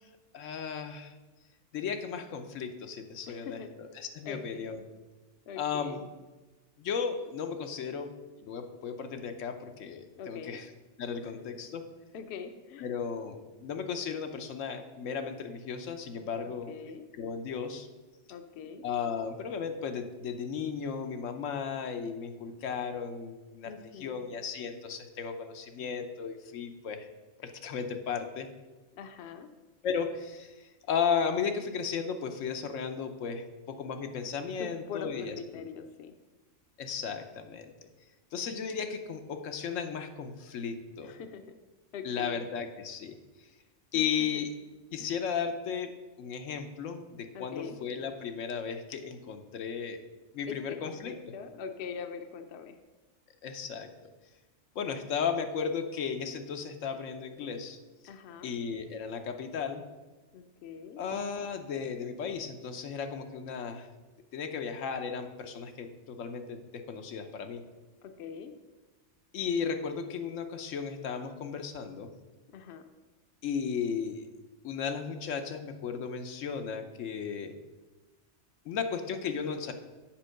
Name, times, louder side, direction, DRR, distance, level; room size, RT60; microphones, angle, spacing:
voice 1, 0.3-1.1 1.7-3.6 4.0-4.8 5.6-6.0 6.8-8.1 8.4-10.7 11.0-11.8 12.8-16.7 17.2-17.9 18.8-23.7 24.0-27.1 27.4-28.5 29.8-35.3 36.8-37.7 38.3-41.1 42.0-43.2 43.9-44.5 44.9-45.9 46.2-50.0 50.3-51.1 53.4-53.9 54.7-57.8 58.4-59.8 61.0-63.9 64.3-67.6 69.3-72.1 73.4-74.3 74.6-77.5 78.6-79.7, left 6 dB, 85° left, 6 dB, 1.1 m, -35 dB
voice 2, 3.3-3.7 4.2-4.8 5.5-6.0 10.2-10.6 12.1-12.9 16.4-17.0 18.3-18.8 23.7-24.2 28.9-29.5 34.6-36.1 41.0-41.5 41.9-42.4 43.9-44.0 45.0-45.1 47.3-47.8 50.5-52.8 58.0-58.5 60.3-61.0 68.0-68.5 72.5-72.8, left 6 dB, 65° left, 8 dB, 0.8 m, -42 dB
7.4 x 4.5 x 6.4 m, 1.2 s
omnidirectional pair, 1.3 m